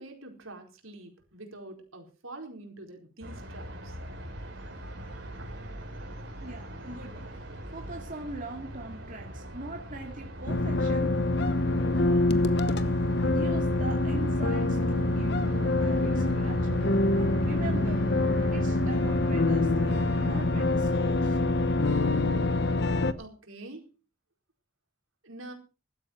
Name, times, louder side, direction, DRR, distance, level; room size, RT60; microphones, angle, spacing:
voice 1, 0.0-4.0 23.2-23.9 25.2-25.5, right 2 dB, 80° right, 3 dB, 4.5 m, -45 dB
sound 1, 3.2-20.4, equal, 55° right, 5.2 m, -39 dB
voice 2, 6.4-11.1 11.9-12.2 13.3-18.0 18.5-21.4, right 2 dB, 40° right, 1 dB, 2.2 m, -42 dB
sound 2, 10.5-23.1, left 2 dB, 55° left, 1.0 m, -25 dB
16.0 x 12.5 x 4.5 m, 0.34 s
head